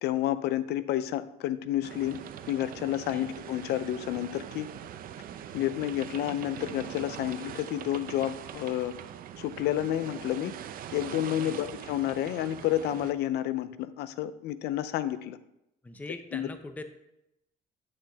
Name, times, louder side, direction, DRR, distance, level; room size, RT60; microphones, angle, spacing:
voice 1, 0.0-2.2 2.5-4.7 5.5-8.9 9.4-10.5 10.9-15.4 16.3-16.5, left 12 dB, 75° left, 14 dB, 0.5 m, -30 dB
sound 1, 1.8-13.1, right 10 dB, 60° right, 0.6 m, -42 dB
voice 2, 15.8-16.8, left 2 dB, 10° left, 8 dB, 0.6 m, -41 dB
9.3 x 6.4 x 3.4 m, 0.85 s
cardioid pair, 110°, 17 cm